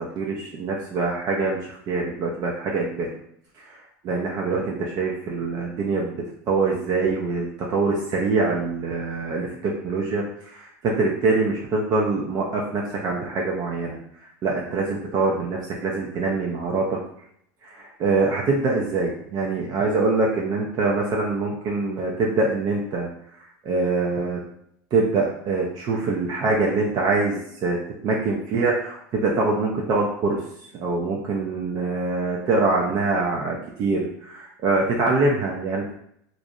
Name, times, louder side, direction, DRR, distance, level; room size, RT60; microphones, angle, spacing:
voice 1, 0.0-3.1 3.6-6.2 6.5-14.0 14.4-17.0 17.6-23.1 23.6-24.4 24.9-27.8 28.0-30.4 30.7-35.9, right 3 dB, 45° right, -2 dB, 0.4 m, -24 dB
2.5 x 2.0 x 2.6 m, 0.71 s
supercardioid pair, 105°, 9 cm